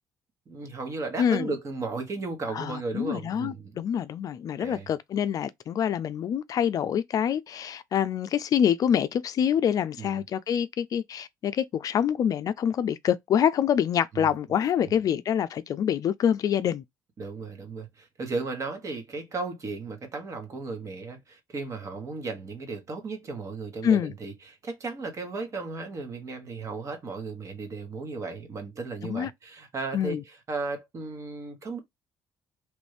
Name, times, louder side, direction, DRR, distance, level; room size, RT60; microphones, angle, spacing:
voice 1, 0.5-3.7 4.6-4.9 10.0-10.1 14.1-14.3 17.2-31.8, right 3 dB, 40° right, 1.3 m, -35 dB
voice 2, 1.2-1.5 2.5-16.8 23.8-24.1 29.0-29.3 29.9-30.2, left 9 dB, 50° left, 0.4 m, -26 dB
3.1 x 2.6 x 3.3 m
cardioid pair, 85°, 8 cm